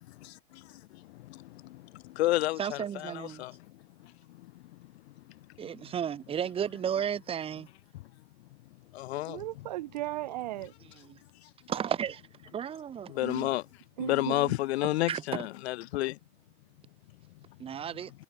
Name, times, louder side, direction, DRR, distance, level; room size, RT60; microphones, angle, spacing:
voice 1, 0.2-3.6 4.0-4.1 4.4-4.5 8.9-9.7 13.1-13.6 14.0-16.2, left 17 dB, 45° left, 1.4 m, -31 dB
voice 2, 2.6-3.4 5.6-7.7 10.8-11.2 11.7-12.2 12.5-13.1 15.1-15.5 17.6-18.1, right 8 dB, 10° right, 1.9 m, -33 dB
voice 3, 9.3-10.7 13.2-13.5 14.0-14.5, right 17 dB, 30° right, 0.6 m, -36 dB
supercardioid pair, 175°, 45 cm